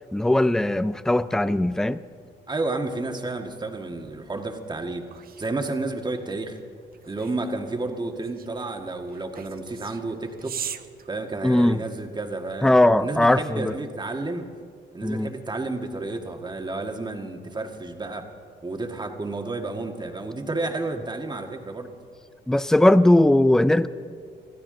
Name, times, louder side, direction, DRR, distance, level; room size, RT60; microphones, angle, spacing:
voice 1, 0.1-2.0 11.4-11.8 12.6-13.7 15.0-15.3 22.5-23.9, left 1 dB, 5° left, 0.4 m, -19 dB
voice 2, 2.5-5.0 5.4-6.6 7.0-10.6 11.1-12.7 13.0-14.5 14.9-18.3 18.6-21.9, right 2 dB, 20° right, 1.6 m, -31 dB
sound 1, 5.1-11.9, right 8 dB, 50° right, 0.7 m, -41 dB
24.5 x 14.5 x 3.8 m
cardioid pair, 90°, 20 cm